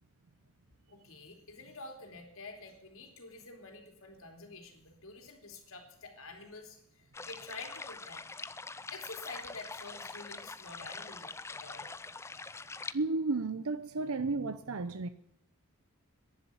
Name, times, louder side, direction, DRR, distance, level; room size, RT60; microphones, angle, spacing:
voice 1, 0.9-8.2 8.9-12.0, left 3 dB, 75° left, 3.4 m, -48 dB
sound 1, 7.1-12.9, left 3 dB, 10° left, 0.4 m, -44 dB
voice 2, 12.9-15.1, right 3 dB, 85° right, 0.8 m, -33 dB
11.0 x 11.0 x 8.5 m
head